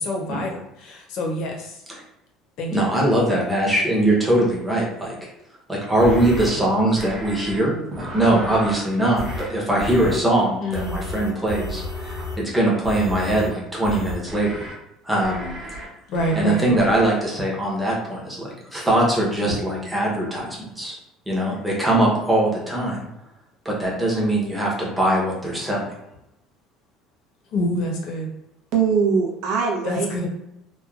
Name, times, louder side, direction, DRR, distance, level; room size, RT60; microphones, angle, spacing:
voice 1, 0.0-1.7 2.6-2.7 10.6-11.0 16.1-16.7 27.5-28.3 29.8-30.3, left 1 dB, 50° left, 0 dB, 0.6 m, -26 dB
voice 2, 2.7-5.1 5.7-14.7 15.0-15.5 16.4-21.0 21.3-23.1 23.6-25.8, right 1 dB, 5° right, -4 dB, 0.7 m, -21 dB
sound 1, 6.0-6.5 7.0-7.6 7.9-8.8 9.2-9.5 9.8-10.2 10.7-12.4 12.8-13.5 13.8-14.7 15.2-15.9 16.1-16.4 16.8-17.1, equal, 40° right, 0.8 m, -32 dB
voice 3, 28.7-30.3, right 5 dB, 70° right, 0 dB, 0.6 m, -22 dB
3.0 x 2.2 x 2.3 m, 0.86 s
cardioid pair, 165°, 0 cm